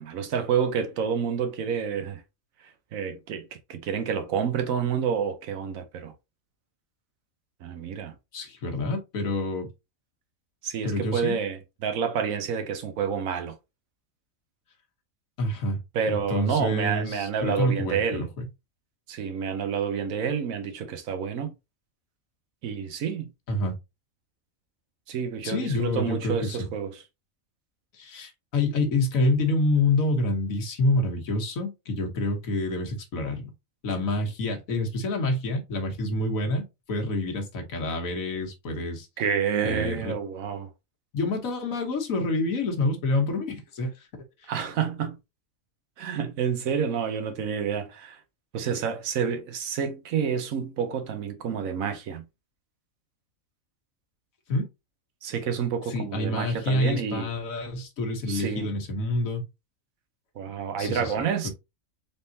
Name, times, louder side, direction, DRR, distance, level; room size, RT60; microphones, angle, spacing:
voice 1, 0.0-2.2 2.9-6.1 7.6-8.2 10.6-13.6 15.9-18.3 19.1-21.5 22.6-23.3 25.1-27.0 39.2-40.7 44.5-45.2 46.0-48.2 48.5-52.3 55.2-57.3 58.3-58.7 60.4-61.5, right 7 dB, 85° right, 1.2 m, -29 dB
voice 2, 8.3-9.7 10.8-11.3 15.4-15.8 16.1-18.4 23.5-23.7 25.4-26.7 28.0-33.5 33.8-39.1 39.6-40.1 41.1-43.9 54.5-54.6 55.9-59.4 60.8-61.1, left 2 dB, 90° left, 1.6 m, -27 dB
4.1 x 3.6 x 2.7 m
omnidirectional pair, 1.4 m